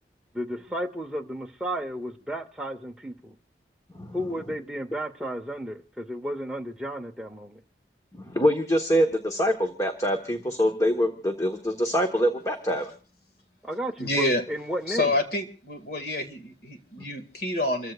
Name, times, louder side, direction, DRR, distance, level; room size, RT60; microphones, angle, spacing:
voice 1, 0.3-3.4 4.1-7.6 13.6-15.1, equal, 5° right, 0.8 m, -33 dB
voice 2, 8.2-12.9, equal, 20° left, 1.1 m, -24 dB
voice 3, 14.0-14.4 14.9-17.9, left 1 dB, 60° left, 2.2 m, -28 dB
28.0 x 14.5 x 2.4 m
head